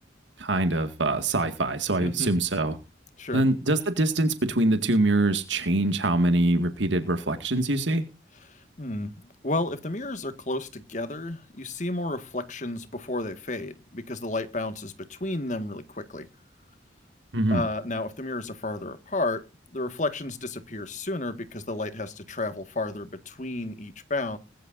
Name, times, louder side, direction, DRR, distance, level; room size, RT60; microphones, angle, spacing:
voice 1, 0.4-2.8 3.3-8.0 17.3-17.6, right 2 dB, 80° right, 2.1 m, -24 dB
voice 2, 2.0-2.3 3.2-3.4 8.8-16.3 17.5-19.4 19.7-24.4, left 2 dB, 40° left, 1.9 m, -32 dB
21.0 x 11.5 x 2.7 m
head